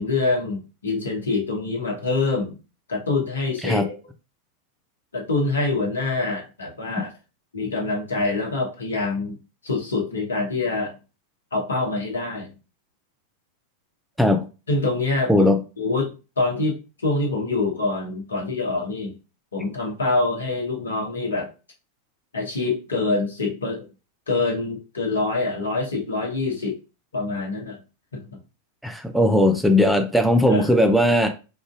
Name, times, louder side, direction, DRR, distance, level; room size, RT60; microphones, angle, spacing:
voice 1, 0.0-2.6 2.9-3.9 5.1-7.1 7.5-9.4 9.6-11.0 11.5-12.5 14.7-15.5 15.8-19.1 19.5-21.5 22.3-23.8 24.3-26.8 27.1-27.8 30.5-30.6, left 3 dB, 70° left, 1.0 m, -25 dB
voice 2, 15.3-15.6 28.8-31.3, left 1 dB, ahead, 0.4 m, -18 dB
4.7 x 2.5 x 2.4 m
figure-of-eight pair, 90°, 0 cm